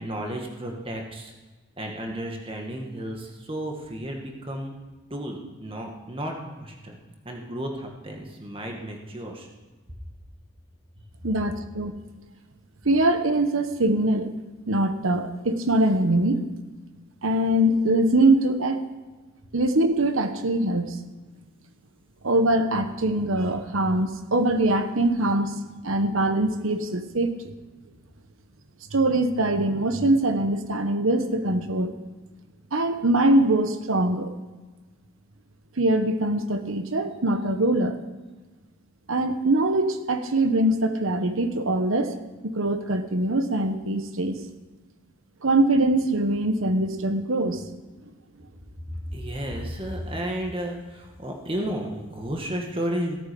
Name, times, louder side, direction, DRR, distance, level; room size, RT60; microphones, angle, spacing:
voice 1, 0.0-1.3 1.8-4.7 5.1-7.0 7.2-9.5 49.1-53.2, right 1 dB, 25° right, 1 dB, 1.8 m, -33 dB
voice 2, 11.2-11.9 12.8-14.3 14.7-16.5 17.2-18.9 19.5-21.0 22.2-25.5 25.8-27.5 28.9-31.9 32.7-34.3 35.8-38.0 39.1-42.2 42.4-44.4 45.4-47.6, right 1 dB, 75° right, 8 dB, 1.1 m, -23 dB
17.0 x 8.9 x 5.4 m, 1.3 s
head